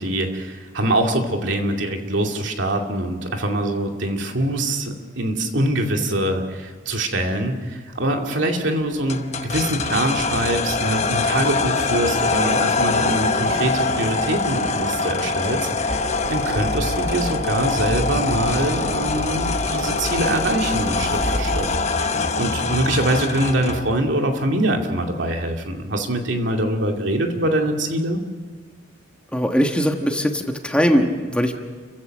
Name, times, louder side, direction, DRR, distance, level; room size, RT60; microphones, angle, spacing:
voice 1, 0.0-16.0 16.3-21.7 22.0-22.1 22.4-28.2, right 1 dB, 75° right, 3 dB, 2.5 m, -24 dB
sound 1, 9.1-23.9, left 3 dB, 35° left, 1.0 m, -24 dB
sound 2, 15.9-21.8, equal, 45° right, 2.4 m, -30 dB
voice 2, 29.3-31.6, equal, 5° left, 3 dB, 1.4 m, -20 dB
30.0 x 15.5 x 6.6 m, 1.5 s
head